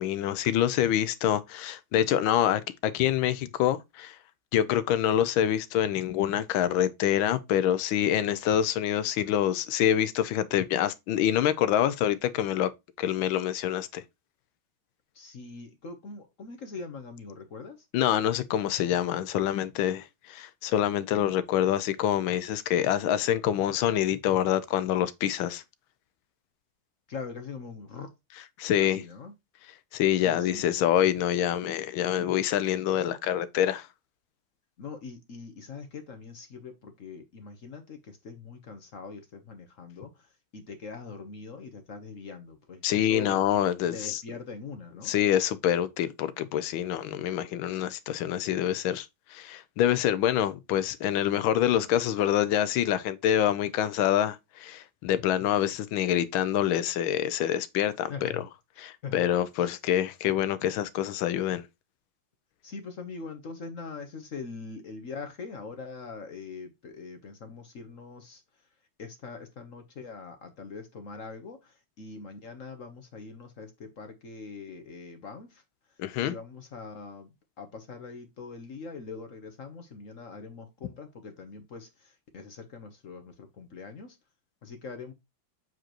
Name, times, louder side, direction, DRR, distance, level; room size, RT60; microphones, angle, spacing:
voice 1, 0.0-4.2 4.5-12.7 13.0-14.0 17.9-25.6 28.6-29.0 29.9-33.9 42.8-44.2 45.1-58.3 58.8-61.6 76.0-76.3, left 11 dB, 80° left, 1.4 m, -26 dB
voice 2, 15.1-17.9 27.1-28.1 28.8-29.3 30.1-30.9 34.8-43.4 43.9-45.1 58.1-58.4 58.7-59.2 59.6-59.7 62.6-68.7 69.0-75.6 75.9-84.2 84.6-85.1, left 4 dB, 50° left, 1.0 m, -42 dB
7.8 x 4.9 x 2.9 m
omnidirectional pair, 2.3 m